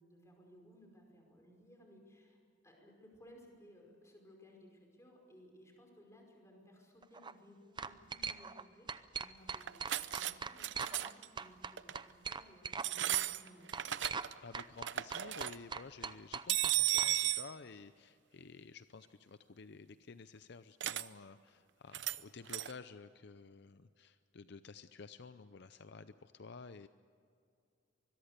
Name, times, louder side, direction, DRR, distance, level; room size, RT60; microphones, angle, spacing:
voice 1, 0.0-2.4 2.6-13.7, equal, 15° left, 1 dB, 5.3 m, -60 dB
sound 1, 7.0-7.3 7.8-8.6 8.9-11.1 11.4-12.9 13.1-13.2 13.7-14.3 14.5-17.1, right 5 dB, 25° right, 0.6 m, -41 dB
sound 2, 9.6-10.3 10.6-11.3 11.8-12.0 12.8-14.3 14.6-15.5 16.5-17.5 20.8-21.0 21.9-22.2 22.5-22.7, right 13 dB, 65° right, 0.7 m, -34 dB
voice 2, 14.4-26.9, left 4 dB, 60° left, 12 dB, 0.6 m, -52 dB
24.5 x 22.0 x 6.8 m, 2.4 s
head